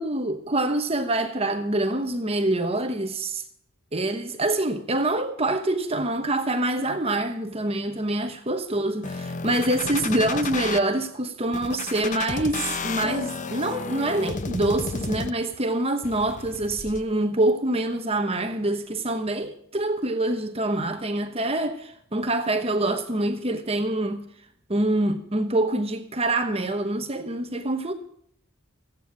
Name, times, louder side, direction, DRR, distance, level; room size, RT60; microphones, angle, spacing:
voice 1, 0.0-3.4 3.9-24.3 24.7-27.9, right 1 dB, 30° right, 1.1 m, -25 dB
sound 1, 9.0-10.8 11.5-15.6 16.0-17.0, left 3 dB, 35° left, 0.7 m, -32 dB
15.5 x 9.2 x 7.3 m
head